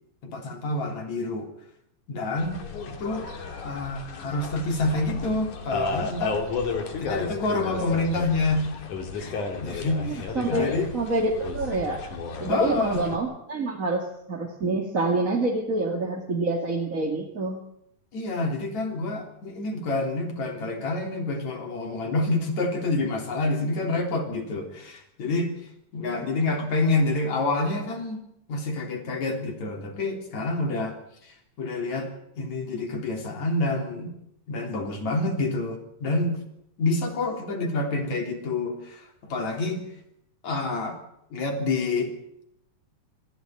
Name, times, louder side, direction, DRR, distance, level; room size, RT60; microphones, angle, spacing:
voice 1, 0.2-1.5 2.1-6.4 7.0-8.8 9.2-10.9 12.5-13.0 18.1-25.5 25.9-31.0 31.2-32.1 32.4-34.1 34.5-36.4 36.8-39.8 40.4-41.0 41.3-42.1, left 2 dB, 70° left, 3 dB, 4.9 m, -28 dB
sound 1, 2.4-13.2, left 4 dB, 90° left, 4.1 m, -33 dB
voice 2, 10.1-12.0 12.4-17.6, right 2 dB, 30° right, 1 dB, 2.5 m, -27 dB
26.0 x 15.0 x 9.2 m, 0.78 s
omnidirectional pair, 3.4 m